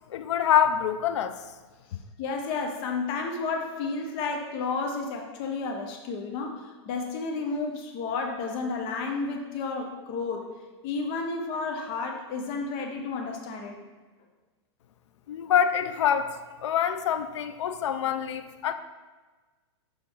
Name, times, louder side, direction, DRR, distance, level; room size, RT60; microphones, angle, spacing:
voice 1, 0.1-1.3 15.3-18.7, left 9 dB, 80° left, 10 dB, 0.5 m, -25 dB
voice 2, 2.2-10.5 10.8-13.8, left 4 dB, 35° left, 2 dB, 0.8 m, -31 dB
6.0 x 5.1 x 3.5 m, 1.3 s
supercardioid pair, 150°, 15 cm